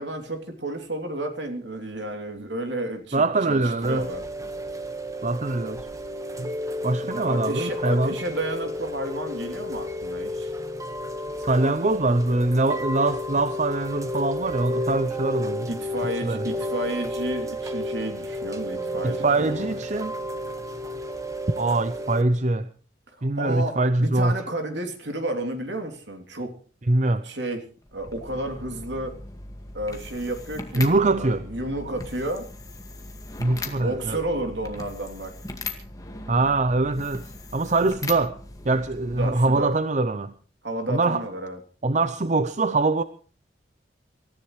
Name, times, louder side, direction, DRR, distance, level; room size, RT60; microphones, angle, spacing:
voice 1, 0.0-4.2 7.3-10.5 15.7-19.8 23.1-26.5 27.2-27.6 27.9-29.2 29.7-32.5 33.8-35.3 39.1-39.8 40.6-41.6, right 1 dB, 65° right, 3.2 m, -31 dB
voice 2, 3.1-4.0 5.2-5.9 6.4-6.5 6.8-8.1 11.4-15.7 16.2-16.4 19.0-20.1 21.6-22.7 23.2-24.4 26.9-27.3 30.8-31.4 33.4-34.2 36.3-37.2 37.5-38.4 38.6-40.3 40.9-41.2 41.8-43.0, right 2 dB, 40° right, 0.7 m, -23 dB
Chime / Rain, 3.8-22.2, equal, 15° right, 1.5 m, -32 dB
sound 1, 27.8-39.8, left 2 dB, 20° left, 2.0 m, -39 dB
27.0 x 14.0 x 3.3 m
head